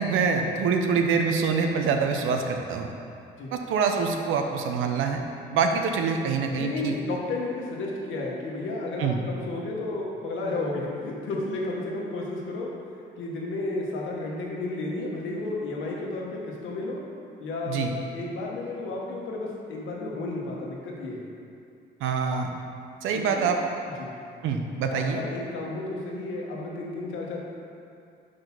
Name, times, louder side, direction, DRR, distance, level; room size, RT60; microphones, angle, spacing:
voice 1, 0.0-2.9 3.5-5.2 5.5-6.9 9.0-9.2 17.7-17.9 22.0-22.5 23.0-23.6 24.4-25.2, right 5 dB, 85° right, 4 dB, 0.6 m, -25 dB
voice 2, 6.6-12.7 13.2-17.0 17.4-21.3 23.1-23.5 24.0-24.1 24.9-27.5, left 2 dB, 75° left, -2 dB, 1.2 m, -32 dB
5.1 x 4.0 x 5.8 m, 2.5 s
cardioid pair, 90°, 20 cm